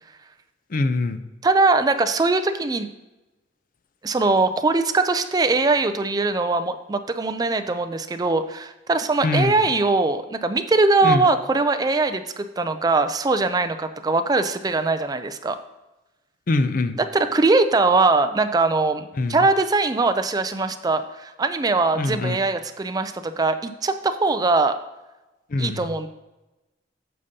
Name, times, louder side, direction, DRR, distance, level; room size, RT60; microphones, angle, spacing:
voice 1, 0.7-1.2 9.2-9.6 11.0-11.3 16.5-17.0 19.2-19.4 21.9-22.4 25.5-25.9, left 2 dB, 50° left, 11 dB, 0.4 m, -23 dB
voice 2, 1.4-2.9 4.0-15.6 17.0-24.7 25.6-26.1, right 3 dB, 20° right, 9 dB, 0.3 m, -21 dB
8.6 x 6.6 x 2.7 m, 1.0 s
head